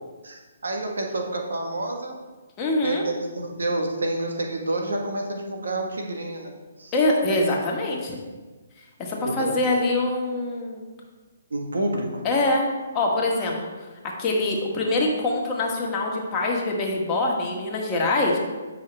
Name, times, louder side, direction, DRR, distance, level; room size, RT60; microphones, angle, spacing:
voice 1, 0.2-2.2 2.8-6.5 6.8-6.9 9.2-9.6 11.5-12.2, right 2 dB, 85° right, 2 dB, 1.3 m, -28 dB
voice 2, 2.6-3.0 6.9-8.2 9.0-10.8 12.2-12.6 12.9-13.7 14.2-18.4, left 2 dB, 25° left, -2 dB, 1.4 m, -24 dB
8.3 x 5.5 x 3.3 m, 1.3 s
hypercardioid pair, 150°, 0 cm